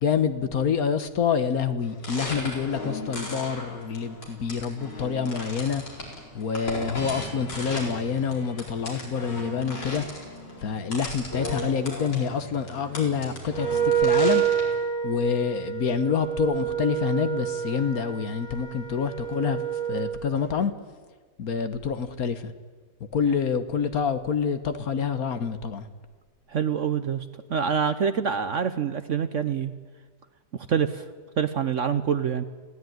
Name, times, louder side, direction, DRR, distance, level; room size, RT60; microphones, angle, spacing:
voice 1, 0.0-5.8 6.3-10.0 10.6-14.4 15.0-19.6 19.9-20.7 21.4-22.5 23.1-25.9, left 6 dB, 60° left, 11 dB, 1.5 m, -27 dB
sound 1, 1.8-14.8, left 1 dB, 75° left, 5.0 m, -37 dB
Wind instrument woodwind instrument, 13.5-20.2, right 9 dB, 80° right, 3.0 m, -27 dB
voice 2, 26.5-29.7 30.5-31.1 31.4-32.4, right 7 dB, 55° right, 11 dB, 0.9 m, -26 dB
20.0 x 16.5 x 9.3 m, 1.4 s
omnidirectional pair, 1.9 m